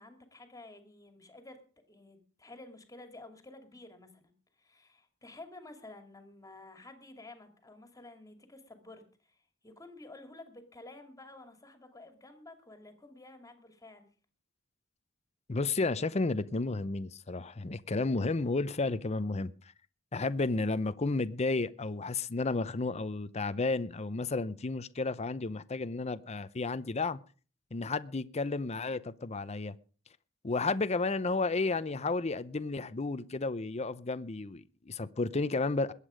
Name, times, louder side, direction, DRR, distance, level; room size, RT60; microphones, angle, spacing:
voice 1, 0.0-1.6 1.9-14.1, left 2 dB, 15° left, 2.4 m, -52 dB
voice 2, 15.5-19.7 20.1-27.2 27.7-29.8 30.4-35.9, left 3 dB, 35° left, 0.6 m, -32 dB
21.0 x 8.4 x 5.1 m
head